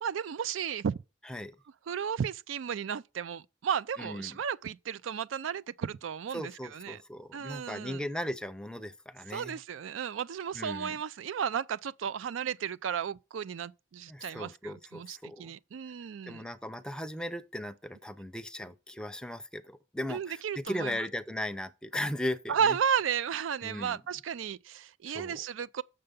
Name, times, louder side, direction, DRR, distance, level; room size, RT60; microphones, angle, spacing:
voice 1, 0.0-1.0 1.9-7.0 7.3-8.0 9.3-16.5 20.1-21.0 22.5-25.8, right 7 dB, 85° right, 0.4 m, -33 dB
voice 2, 4.0-4.4 6.3-9.6 10.5-11.0 14.1-15.5 16.3-22.8 23.6-24.0 25.1-25.4, left 1 dB, 5° left, 0.6 m, -37 dB
6.7 x 6.6 x 5.3 m
head